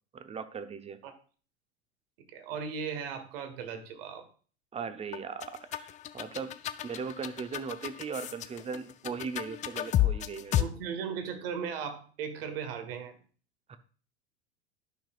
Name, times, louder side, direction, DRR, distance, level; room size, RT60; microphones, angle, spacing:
voice 1, 0.1-1.0 4.7-10.7 13.7-13.8, right 5 dB, 20° right, 11 dB, 0.8 m, -38 dB
voice 2, 2.3-4.3 10.6-13.2, right 6 dB, 60° right, 8 dB, 1.5 m, -37 dB
sound 1, 5.1-10.6, left 13 dB, 25° left, 0.4 m, -31 dB
12.0 x 5.8 x 2.4 m, 0.40 s
figure-of-eight pair, 80°, 33 cm